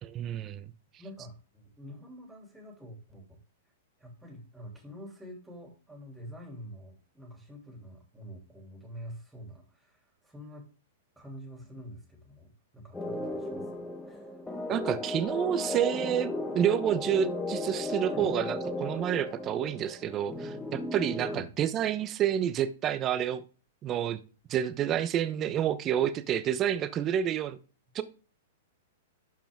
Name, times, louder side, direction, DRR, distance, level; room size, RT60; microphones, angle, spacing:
voice 1, 0.0-0.7 14.7-23.4 23.8-24.2 24.5-27.6 27.9-28.0, right 10 dB, 30° right, 0.9 m, -29 dB
voice 2, 1.0-3.4 4.0-10.7 11.2-14.3 18.1-18.2 21.3-21.5, equal, 5° right, 2.9 m, -47 dB
sound 1, 12.9-21.4, left 2 dB, 10° left, 1.3 m, -35 dB
12.0 x 4.9 x 3.6 m
hypercardioid pair, 125°, 0 cm